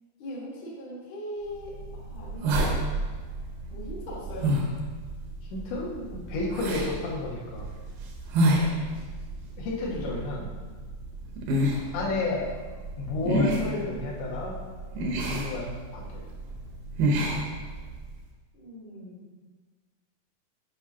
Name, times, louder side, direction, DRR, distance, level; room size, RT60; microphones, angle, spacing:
voice 1, 0.2-2.7 3.7-4.5 9.9-10.4 18.5-19.4, equal, 65° left, -6 dB, 1.1 m, -40 dB
sound 1, 1.5-18.2, right 1 dB, 80° right, 1.9 m, -30 dB
voice 2, 5.5-7.7 9.6-10.5 11.9-12.5 13.0-14.6 15.2-15.7 15.9-16.3, left 2 dB, 85° left, -4 dB, 3.4 m, -31 dB
9.7 x 5.1 x 2.8 m, 1.4 s
omnidirectional pair, 5.0 m